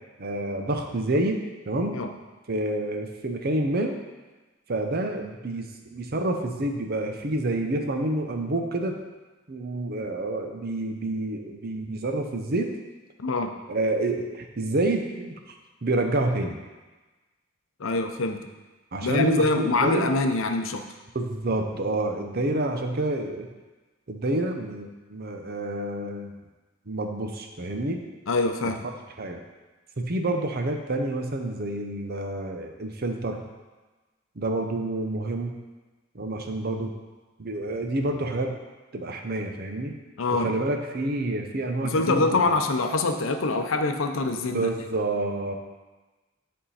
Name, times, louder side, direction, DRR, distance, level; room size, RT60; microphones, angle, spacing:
voice 1, 0.2-2.0 2.5-4.0 4.7-9.0 9.5-12.7 13.7-15.4 15.8-16.6 18.9-20.1 21.1-23.5 24.1-26.3 26.9-28.0 28.6-28.7 29.2-29.4 30.0-33.4 34.4-35.5 36.1-36.9 37.4-38.5 38.9-40.0 40.3-42.6 44.5-45.5, right 2 dB, 50° right, 4 dB, 0.8 m, -28 dB
voice 2, 13.2-13.6 17.8-18.5 19.0-20.8 28.3-28.8 40.2-40.5 41.8-44.7, left 3 dB, 75° left, 6 dB, 0.6 m, -24 dB
10.5 x 3.7 x 4.2 m, 1.2 s
head